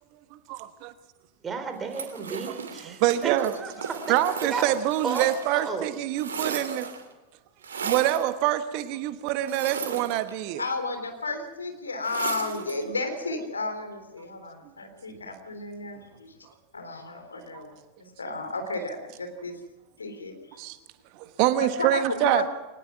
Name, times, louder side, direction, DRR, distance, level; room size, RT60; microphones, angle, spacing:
voice 1, 1.4-3.9 4.3-4.7 5.0-5.9, right 5 dB, 20° right, 3.8 m, -33 dB
sound 1, 1.9-5.7 5.9-7.1 7.6-8.3 9.4-10.6 12.0-12.8, right 6 dB, 65° right, 2.9 m, -36 dB
voice 2, 2.9-3.5 4.1-6.9 7.8-10.6 17.5-17.6 20.6-20.8 21.2-22.4, right 14 dB, 45° right, 1.3 m, -25 dB
voice 3, 10.6-16.3 16.7-17.7 18.0-19.6 20.0-20.6 21.6-22.5, left 2 dB, 75° left, 3.7 m, -33 dB
23.0 x 19.5 x 6.1 m
figure-of-eight pair, 90°, 0 cm